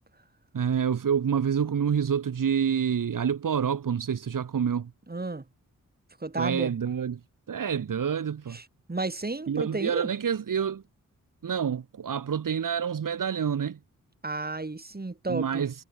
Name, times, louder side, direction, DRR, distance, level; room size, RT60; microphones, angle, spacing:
voice 1, 0.5-4.9 6.4-7.2 7.5-8.6 9.5-10.8 11.4-13.8 15.3-15.7, right 7 dB, 80° right, 3.5 m, -27 dB
voice 2, 5.1-5.4 6.2-6.8 8.5-10.1 14.2-15.6, right 3 dB, 30° right, 7.9 m, -32 dB
cardioid pair, 70°, 32 cm